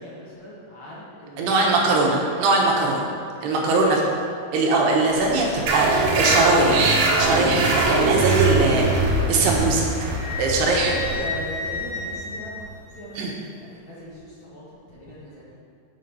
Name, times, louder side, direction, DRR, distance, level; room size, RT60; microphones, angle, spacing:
voice 1, 0.0-2.1 3.8-3.9 10.6-12.7 12.9-15.5, equal, 55° left, -8 dB, 1.4 m, -39 dB
voice 2, 1.4-3.1 3.4-4.0 4.5-8.9 9.3-9.9 10.4-10.9 13.2-13.3, right 3 dB, 90° right, -1 dB, 3.2 m, -21 dB
Truck / Idling, 5.1-11.1, left 2 dB, 30° right, 1.7 m, -38 dB
sound 1, 5.7-12.8, right 3 dB, 70° right, 2.5 m, -22 dB
Wind instrument woodwind instrument, 9.8-13.3, left 3 dB, 75° left, 3.0 m, -33 dB
8.3 x 5.0 x 5.3 m, 2.4 s
omnidirectional pair, 4.6 m